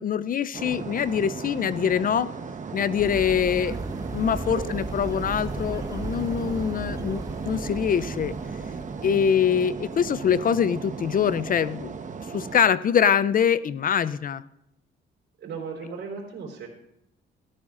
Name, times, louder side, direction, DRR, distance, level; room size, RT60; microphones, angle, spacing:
voice 1, 0.0-2.3 2.7-3.8 4.1-8.3 9.0-11.9 12.3-14.4, left 8 dB, 45° left, 15 dB, 0.5 m, -24 dB
sound 1, 0.5-12.6, right 5 dB, 40° right, 1.0 m, -36 dB
sound 2, 3.0-9.4, right 2 dB, 20° right, 0.9 m, -36 dB
voice 2, 15.4-16.7, right 5 dB, 70° right, -2 dB, 3.9 m, -36 dB
17.5 x 13.0 x 2.5 m, 0.80 s
cardioid pair, 90°, 20 cm